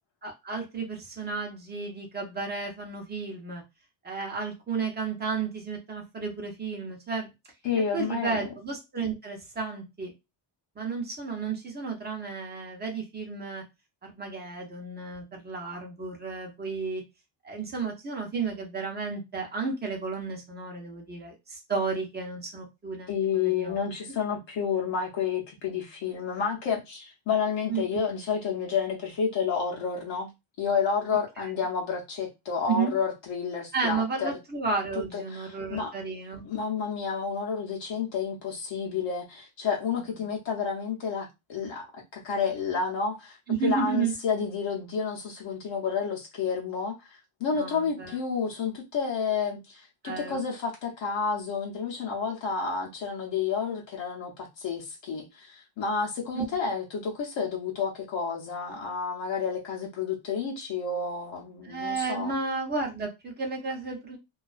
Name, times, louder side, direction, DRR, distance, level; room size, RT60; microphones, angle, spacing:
voice 1, 0.2-3.6 4.0-7.3 7.9-10.1 10.8-13.6 14.0-17.0 17.4-23.8 27.7-27.8 31.4-31.5 32.7-32.9 33.7-36.5 43.5-44.1 47.5-48.2 50.0-50.4 56.3-56.4 61.6-64.2, right 4 dB, 20° right, 0.6 m, -32 dB
voice 2, 7.6-8.4 23.1-30.3 30.6-34.4 35.1-35.9 36.4-62.4, left 6 dB, 60° left, 0.7 m, -30 dB
2.3 x 2.2 x 2.3 m
cardioid pair, 145°, 50 cm